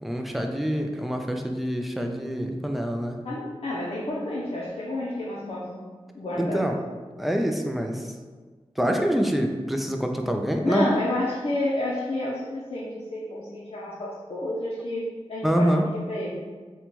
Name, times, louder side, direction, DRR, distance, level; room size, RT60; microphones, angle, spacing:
voice 1, 0.0-3.2 6.4-6.8 7.2-8.1 8.8-11.0 15.4-15.8, equal, ahead, 2 dB, 0.3 m, -25 dB
voice 2, 3.2-5.8 6.1-6.7 10.6-15.8 16.1-16.4, left 1 dB, 65° left, -6 dB, 0.5 m, -30 dB
4.2 x 2.2 x 2.9 m, 1.5 s
wide cardioid pair, 80°, 11 cm